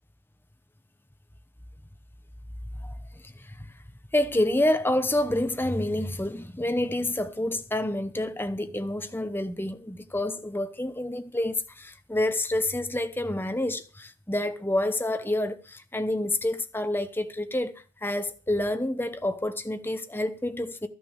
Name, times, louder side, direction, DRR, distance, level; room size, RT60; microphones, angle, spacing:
voice 1, 2.8-3.7 4.1-20.9, left 1 dB, 10° left, 0.9 m, -28 dB
14.0 x 6.4 x 8.0 m
head